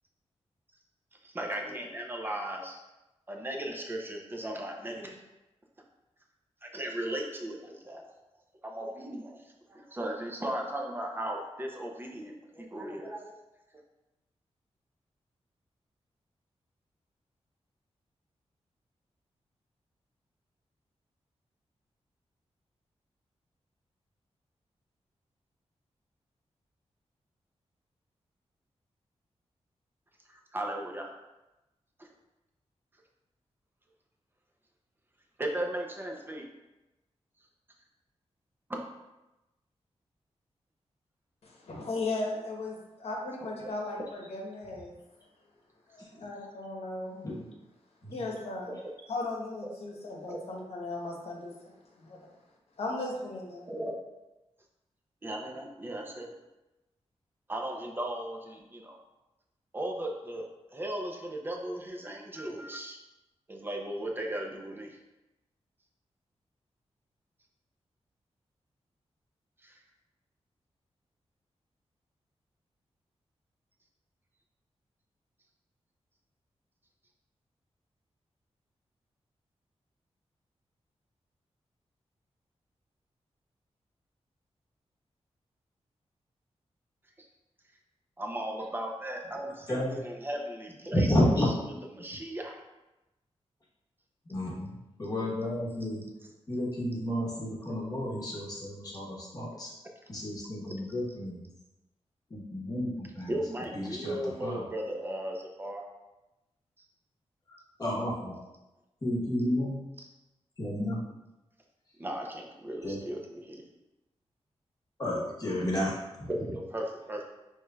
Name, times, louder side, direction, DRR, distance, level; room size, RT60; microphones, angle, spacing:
voice 1, 1.2-2.8 3.3-5.2 6.6-8.1 8.6-9.4 9.7-13.3 30.3-31.1 32.0-32.1 35.4-36.5 38.7-38.8 48.7-48.8 50.3-50.4 53.7-54.0 55.2-56.3 57.5-59.0 59.7-63.0 63.5-65.0 69.6-69.8 87.2-87.3 88.2-91.2 91.9-92.6 103.3-105.8 112.0-113.6 116.3-117.2, right 1 dB, 20° right, 1 dB, 0.5 m, -36 dB
voice 2, 41.4-44.9 45.9-47.2 48.1-48.7 49.1-52.3 52.8-53.7, left 2 dB, 70° left, -1 dB, 0.9 m, -37 dB
voice 3, 90.9-91.5 94.3-96.1 96.5-99.8 100.1-101.4 102.3-103.3 103.7-104.6 107.5-108.4 109.0-109.8 110.6-111.0 112.8-113.0 115.0-116.3, left 1 dB, 35° left, -5 dB, 1.0 m, -31 dB
5.2 x 3.1 x 2.3 m, 1.0 s
wide cardioid pair, 150°, 11 cm